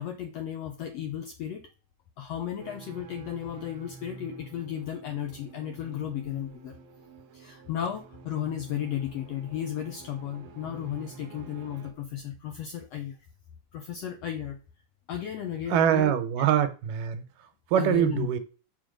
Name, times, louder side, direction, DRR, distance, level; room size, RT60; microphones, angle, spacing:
voice 1, 0.0-1.6 2.2-6.7 7.3-13.1 13.7-14.6 15.1-16.2 17.8-18.3, left 10 dB, 80° left, 1.4 m, -34 dB
sound 1, 2.6-11.9, right 4 dB, 65° right, 2.0 m, -49 dB
voice 2, 15.7-17.2 17.7-18.4, right 10 dB, 85° right, 2.5 m, -24 dB
5.7 x 5.2 x 5.1 m
omnidirectional pair, 3.8 m